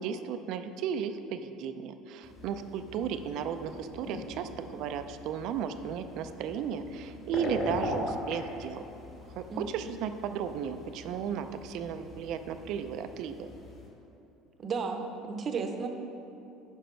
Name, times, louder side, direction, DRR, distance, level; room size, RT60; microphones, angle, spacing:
voice 1, 0.0-8.8 9.4-13.5, right 8 dB, 65° right, 9 dB, 0.5 m, -35 dB
sound 1, 2.2-13.9, left 1 dB, 45° left, 2.0 m, -41 dB
voice 2, 14.6-15.9, right 5 dB, 35° right, 5 dB, 0.8 m, -33 dB
10.0 x 5.1 x 4.5 m, 2.8 s
cardioid pair, 125°, 0 cm